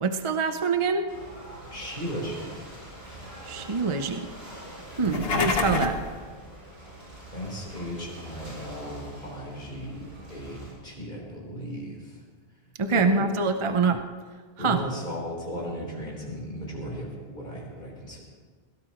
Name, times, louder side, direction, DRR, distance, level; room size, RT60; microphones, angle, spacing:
voice 1, 0.0-1.1 3.5-4.3 5.0-6.0 12.8-14.0 14.6-14.8, right 4 dB, 35° right, 7 dB, 0.7 m, -25 dB
Ocean / Boat Water vehicle, 1.1-10.7, right 1 dB, 55° right, 6.6 m, -44 dB
voice 2, 1.7-2.7 5.0-5.3 7.3-12.2 12.9-13.3 13.6-13.7 14.6-18.2, equal, 50° left, -3 dB, 4.0 m, -36 dB
sound 1, 4.9-6.1, left 4 dB, 75° left, 1.4 m, -27 dB
22.0 x 17.5 x 3.0 m, 1.5 s
omnidirectional pair, 1.0 m